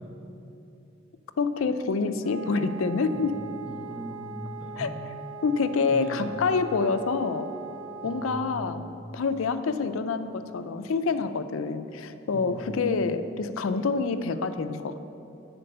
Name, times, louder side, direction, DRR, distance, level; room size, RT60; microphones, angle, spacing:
voice 1, 1.4-3.4 4.8-4.9 5.4-7.5 8.0-8.8 9.1-15.0, left 4 dB, 75° left, 10 dB, 0.4 m, -27 dB
Wind instrument woodwind instrument, 2.2-8.8, right 4 dB, 55° right, 0.6 m, -41 dB
voice 2, 3.1-5.0 5.9-6.4 8.0-8.8 12.3-12.9, right 1 dB, 5° right, 0 dB, 0.6 m, -39 dB
8.9 x 4.3 x 6.6 m, 2.8 s
head